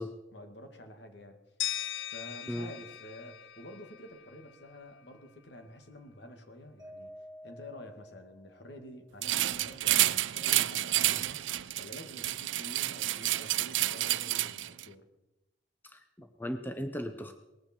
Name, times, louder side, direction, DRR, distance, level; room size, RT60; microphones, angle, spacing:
voice 1, 0.0-1.4 2.1-7.1 7.4-11.4 11.8-15.0, left 1 dB, 60° left, 6 dB, 2.1 m, -49 dB
sound 1, 1.6-4.5, left 11 dB, 85° left, 0.8 m, -39 dB
Mallet percussion, 6.8-9.1, equal, 25° right, 2.4 m, -51 dB
sound 2, 9.2-14.9, right 15 dB, 75° right, 0.5 m, -29 dB
voice 2, 15.8-17.4, equal, 10° left, 7 dB, 0.8 m, -37 dB
19.5 x 14.5 x 4.5 m, 1.0 s
head